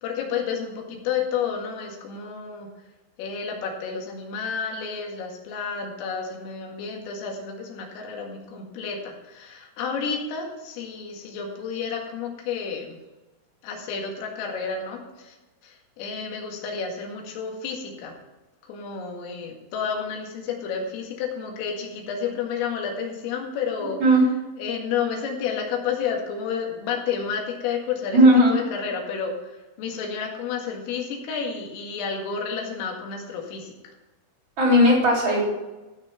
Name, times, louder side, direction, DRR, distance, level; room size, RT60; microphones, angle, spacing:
voice 1, 0.0-2.7 3.2-13.0 13.6-15.4 15.6-18.1 18.6-24.0 24.6-28.2 28.5-33.9, left 6 dB, 90° left, 1 dB, 4.7 m, -31 dB
voice 2, 28.1-28.5 34.6-35.4, equal, 30° right, -2 dB, 3.3 m, -16 dB
15.0 x 6.6 x 5.8 m, 1.1 s
omnidirectional pair, 5.7 m